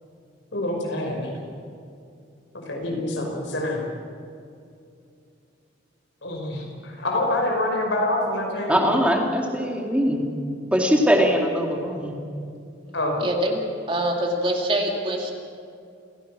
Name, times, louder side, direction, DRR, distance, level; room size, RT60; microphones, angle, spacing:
voice 1, 0.5-1.4 2.7-3.8 6.2-9.0 12.9-13.1, left 1 dB, 70° left, 1 dB, 5.2 m, -26 dB
voice 2, 8.7-10.2 10.7-12.2, equal, 5° right, 1 dB, 2.5 m, -21 dB
voice 3, 13.2-13.6 13.9-15.3, right 1 dB, 25° right, 1 dB, 2.6 m, -24 dB
29.0 x 16.0 x 6.3 m, 2.5 s
head